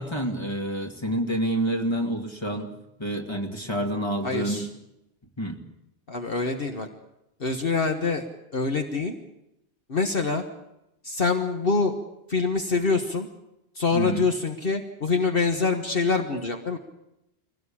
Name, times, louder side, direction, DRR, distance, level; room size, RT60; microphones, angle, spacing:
voice 1, 0.0-2.7 3.0-4.7 5.4-5.6 13.9-14.3, right 1 dB, 25° left, 4 dB, 2.4 m, -28 dB
voice 2, 4.2-4.7 6.1-6.9 7.4-8.2 8.5-9.1 9.9-10.4 11.0-12.0 12.3-13.3 13.7-16.8, left 4 dB, 55° left, 5 dB, 1.6 m, -25 dB
23.0 x 17.5 x 8.7 m, 0.87 s
omnidirectional pair, 1.1 m